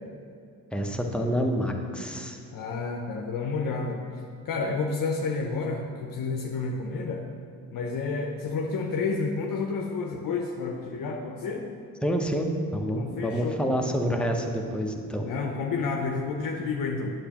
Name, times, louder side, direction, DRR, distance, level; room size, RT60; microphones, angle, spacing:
voice 1, 0.7-2.4 12.0-15.3, equal, 5° left, 2 dB, 0.8 m, -28 dB
voice 2, 2.5-7.3 7.7-11.6 12.9-13.6 15.2-17.1, left 4 dB, 60° left, 1 dB, 0.7 m, -30 dB
8.0 x 6.7 x 2.9 m, 2.4 s
supercardioid pair, 65°, 38 cm